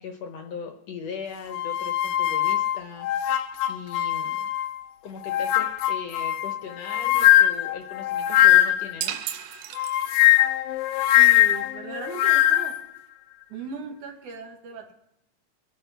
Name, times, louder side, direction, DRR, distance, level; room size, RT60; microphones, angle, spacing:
voice 1, 0.0-4.4 5.0-9.2, left 6 dB, 65° left, 4 dB, 1.8 m, -39 dB
sound 1, 1.5-4.8 5.2-9.0 9.8-12.8, left 14 dB, 85° left, 2.2 m, -21 dB
sound 2, 9.0-10.5, right 11 dB, 85° right, 2.4 m, -34 dB
voice 2, 11.1-12.8 13.5-14.9, right 5 dB, 70° right, 3 dB, 2.8 m, -38 dB
22.0 x 10.5 x 3.5 m, 0.82 s
omnidirectional pair, 3.8 m